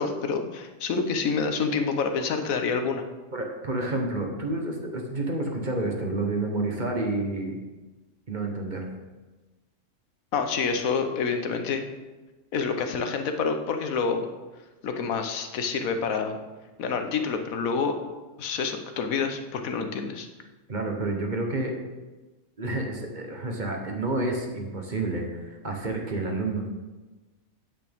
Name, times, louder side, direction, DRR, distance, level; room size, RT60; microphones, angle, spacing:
voice 1, 0.0-3.0 10.3-11.8 12.5-14.3 14.8-16.4 16.8-18.0 18.4-20.3, left 5 dB, 90° left, 6 dB, 1.3 m, -27 dB
voice 2, 3.3-7.6 8.3-8.9 20.7-21.7 22.6-26.7, right 2 dB, 35° right, 2 dB, 1.1 m, -29 dB
8.9 x 8.4 x 3.5 m, 1.2 s
omnidirectional pair, 1.4 m